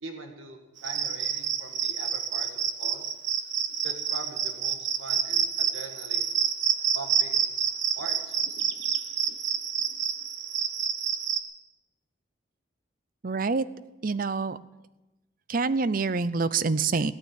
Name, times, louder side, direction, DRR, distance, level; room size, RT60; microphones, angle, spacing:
voice 1, 0.0-3.0 3.8-6.3 6.9-7.5 8.0-8.4, right 3 dB, 85° right, 4 dB, 1.9 m, -42 dB
Cricket, 0.8-11.4, right 8 dB, 70° right, 1.1 m, -28 dB
voice 2, 13.2-13.6 14.0-14.6 15.5-17.1, right 4 dB, 45° right, 16 dB, 0.5 m, -26 dB
17.0 x 8.9 x 8.5 m, 1.0 s
head